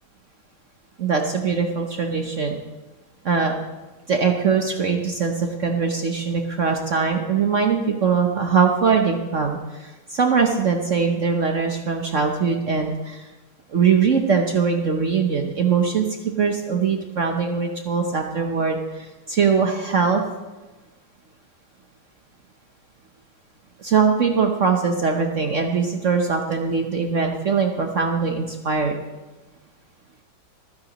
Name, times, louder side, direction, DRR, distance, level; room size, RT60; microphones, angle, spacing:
voice 1, 1.0-2.6 3.2-3.6 4.1-13.3 13.7-20.2 23.8-28.9, right 5 dB, 60° right, 3 dB, 0.8 m, -22 dB
24.5 x 9.7 x 3.0 m, 1.2 s
omnidirectional pair, 2.4 m